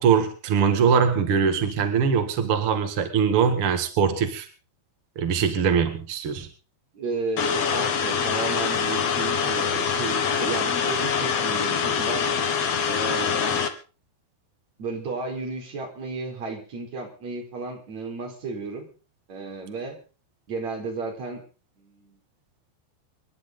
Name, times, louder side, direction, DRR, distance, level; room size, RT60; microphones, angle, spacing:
voice 1, 0.0-4.5 5.1-6.5, right 6 dB, 60° right, 8 dB, 1.4 m, -22 dB
voice 2, 6.9-12.3 12.9-13.7 14.8-18.9 19.3-20.0 20.5-21.4 21.8-22.2, right 3 dB, 40° right, 2 dB, 5.3 m, -33 dB
sound 1, 7.4-13.7, left 6 dB, 65° left, 1.6 m, -24 dB
26.5 x 11.5 x 3.8 m, 0.37 s
omnidirectional pair, 5.4 m